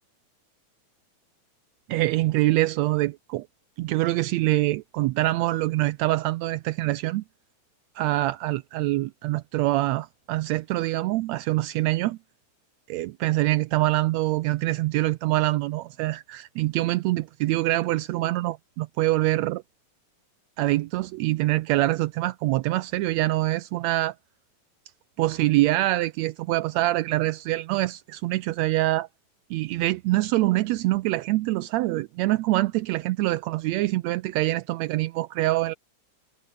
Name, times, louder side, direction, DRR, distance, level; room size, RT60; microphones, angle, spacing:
voice 1, 1.9-3.5 3.8-7.2 7.9-12.2 12.9-19.6 20.6-24.1 25.2-29.1 29.5-35.7, right 17 dB, 85° right, 1.5 m, -25 dB
omnidirectional pair, 3.7 m